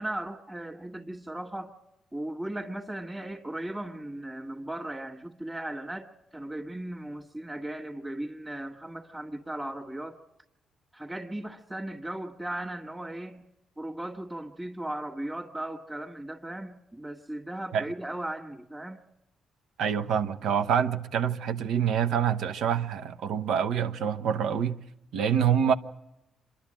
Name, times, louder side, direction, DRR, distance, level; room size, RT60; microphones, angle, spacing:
voice 1, 0.0-1.7 2.1-10.2 10.9-13.4 13.8-19.0, right 1 dB, 10° right, 1.8 m, -37 dB
voice 2, 19.8-24.8 25.1-25.7, right 8 dB, 80° right, 1.1 m, -26 dB
26.5 x 11.5 x 8.9 m
cardioid pair, 90°, 0 cm